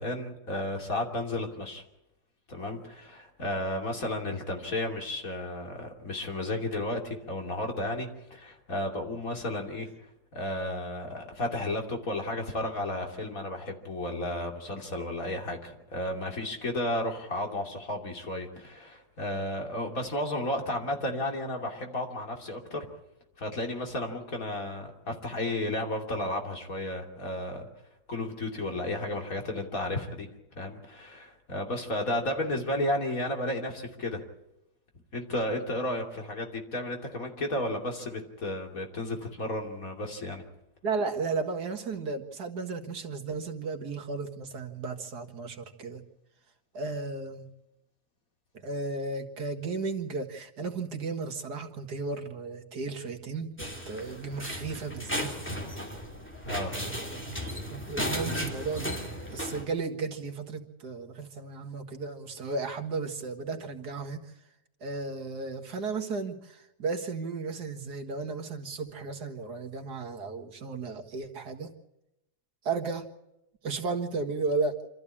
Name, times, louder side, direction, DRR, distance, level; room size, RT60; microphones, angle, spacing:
voice 1, 0.0-1.8 2.5-9.9 10.3-22.8 23.4-27.7 28.1-30.3 30.6-34.2 35.1-40.4 56.4-56.7, left 1 dB, 60° left, 2 dB, 3.3 m, -33 dB
voice 2, 40.8-46.0 46.7-47.5 48.6-53.5 53.9-55.5 57.7-59.0 59.3-64.3 64.8-71.7 72.6-73.1 73.6-74.8, right 4 dB, 75° right, 5 dB, 2.3 m, -34 dB
sound 1, 53.6-59.6, equal, 5° left, 2.5 m, -35 dB
26.5 x 14.0 x 8.6 m, 0.90 s
omnidirectional pair, 1.7 m